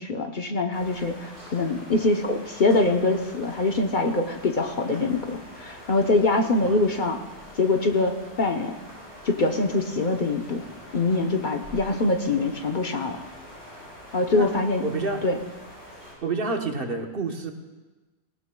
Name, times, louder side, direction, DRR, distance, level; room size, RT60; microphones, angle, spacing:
voice 1, 0.0-7.2 7.6-8.7 9.2-10.6 10.9-13.2 14.1-14.8 15.2-15.4, left 2 dB, 45° left, 4 dB, 0.9 m, -24 dB
sound 1, 0.7-16.1, equal, 85° left, 5.1 m, -45 dB
voice 2, 14.8-15.2 16.2-17.5, right 3 dB, 55° right, 4 dB, 1.2 m, -28 dB
19.0 x 18.5 x 2.3 m, 1.2 s
omnidirectional pair, 1.2 m